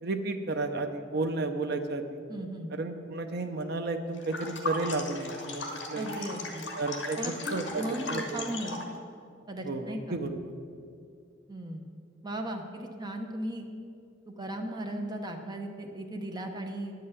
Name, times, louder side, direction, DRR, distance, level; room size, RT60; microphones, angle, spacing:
voice 1, 0.0-2.2 2.7-6.2 6.8-7.2 7.5-8.4 9.6-10.5, right 3 dB, 55° right, 6 dB, 0.6 m, -32 dB
voice 2, 2.3-2.7 5.9-6.7 7.2-8.8 9.5-10.2 11.5-11.8 12.2-13.7 14.3-16.9, right 1 dB, 20° right, 3 dB, 0.8 m, -37 dB
sound 1, 4.2-8.9, left 2 dB, 65° left, 1.3 m, -37 dB
10.0 x 5.6 x 8.1 m, 2.4 s
head